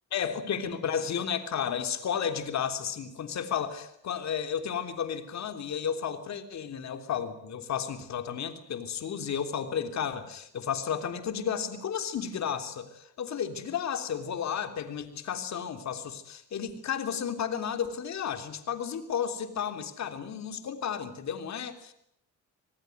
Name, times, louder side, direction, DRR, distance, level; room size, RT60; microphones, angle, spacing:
voice 1, 0.1-21.9, left 8 dB, 65° left, 8 dB, 3.5 m, -33 dB
26.5 x 19.5 x 9.2 m, 0.74 s
cardioid pair, 90°, 30 cm